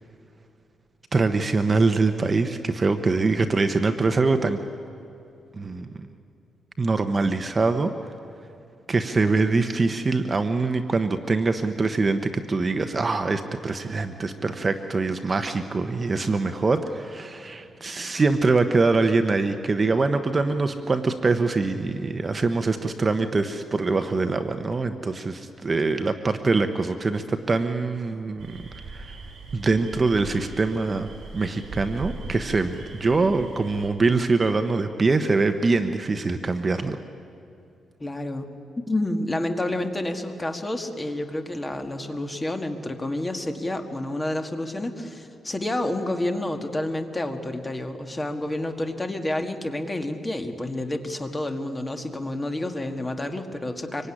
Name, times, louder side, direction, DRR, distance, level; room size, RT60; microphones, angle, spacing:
voice 1, 1.1-4.6 5.6-6.1 6.8-7.9 8.9-28.6 28.9-29.1 29.5-37.0, right 3 dB, 25° right, 8 dB, 0.9 m, -24 dB
sound 1, 28.4-33.9, right 3 dB, 65° right, 6.0 m, -40 dB
voice 2, 38.0-38.5 38.8-54.1, left 1 dB, 15° left, 5 dB, 1.8 m, -29 dB
25.5 x 23.5 x 10.0 m, 2.6 s
cardioid pair, 145°, 0 cm